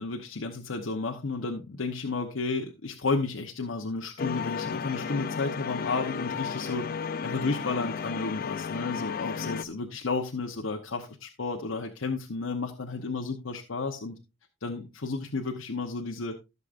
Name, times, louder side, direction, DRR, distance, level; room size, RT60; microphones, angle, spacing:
voice 1, 0.0-6.9 7.2-14.1 14.6-16.4, left 3 dB, 85° left, 3 dB, 1.0 m, -32 dB
sound 1, 4.2-9.6, left 6 dB, 45° left, 0.5 m, -33 dB
15.0 x 6.7 x 2.5 m, 0.26 s
head